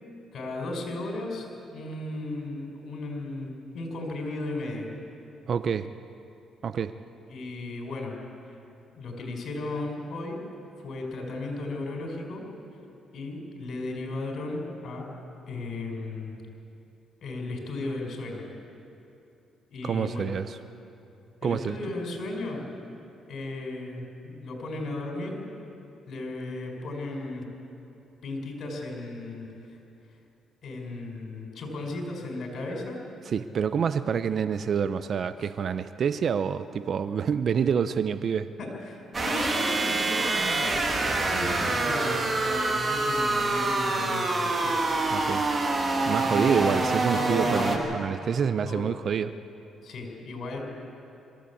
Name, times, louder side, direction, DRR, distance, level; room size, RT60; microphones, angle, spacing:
voice 1, 0.3-4.9 7.3-8.1 8.5-8.6 9.0-10.4 10.8-12.4 13.1-15.1 15.5-16.4 17.2-18.5 19.7-20.3 21.4-22.6 23.3-25.4 26.1-27.5 28.2-29.8 30.6-33.0 35.4-35.5 38.6-44.8 46.2-46.8 47.1-47.9 48.7-49.0 49.8-50.7, left 2 dB, 60° left, 1 dB, 5.4 m, -35 dB
voice 2, 5.5-5.9 6.6-6.9 19.8-20.6 21.4-21.8 33.3-38.5 45.1-45.5 46.1-49.3, right 7 dB, 55° right, 11 dB, 0.6 m, -27 dB
sound 1, 39.1-47.8, right 2 dB, 30° right, 2.7 m, -26 dB
22.0 x 15.0 x 8.5 m, 2.8 s
cardioid pair, 90°, 0 cm